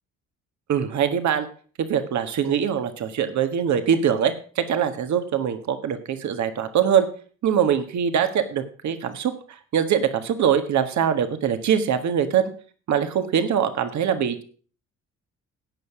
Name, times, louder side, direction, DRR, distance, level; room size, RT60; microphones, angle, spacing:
voice 1, 0.7-1.5 1.8-7.1 7.4-12.5 12.9-14.4, right 8 dB, 70° right, 9 dB, 1.6 m, -23 dB
17.0 x 5.7 x 6.1 m, 0.42 s
cardioid pair, 90°, 30 cm